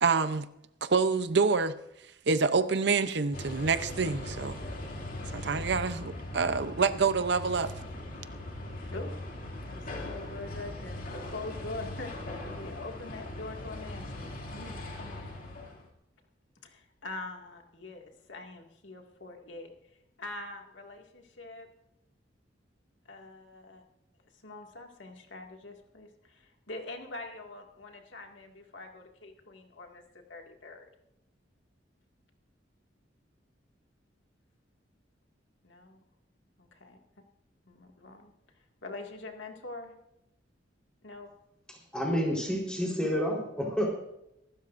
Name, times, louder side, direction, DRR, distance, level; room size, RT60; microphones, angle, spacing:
voice 1, 0.0-0.5 0.8-1.8 2.3-4.6 5.3-7.7, right 4 dB, 65° right, 0.7 m, -27 dB
sound 1, 3.3-15.8, left 1 dB, 50° left, 2.6 m, -40 dB
voice 2, 9.6-12.1 12.5-15.4 16.6-19.7 20.2-21.7 23.1-23.8 24.4-30.9 35.6-36.0 36.6-37.0 37.7-38.3 38.8-39.9 41.0-41.3, left 2 dB, 80° left, 2.2 m, -44 dB
voice 3, 41.9-43.9, equal, 5° left, 4.1 m, -29 dB
24.5 x 12.5 x 2.6 m
head